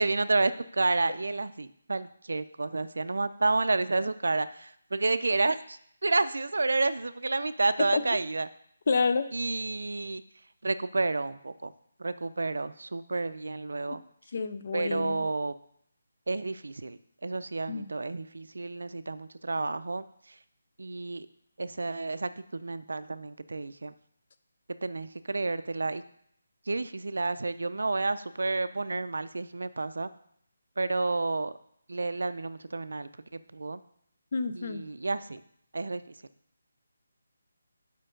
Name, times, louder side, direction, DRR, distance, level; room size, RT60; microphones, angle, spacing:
voice 1, 0.0-8.5 9.3-10.2 10.6-11.7 12.0-14.0 14.7-15.5 16.3-20.0 20.8-21.3 21.6-22.3 22.6-23.9 24.8-26.0 26.7-30.1 30.8-31.5 31.9-33.1 33.5-33.8 34.6-35.4 35.7-36.0, right 3 dB, 80° right, 13 dB, 0.4 m, -30 dB
voice 2, 8.9-9.3 13.9-14.0 14.3-15.3 17.7-17.9 34.3-34.8, left 4 dB, 35° left, 11 dB, 0.3 m, -29 dB
5.2 x 4.4 x 5.0 m, 0.67 s
hypercardioid pair, 180°, 0 cm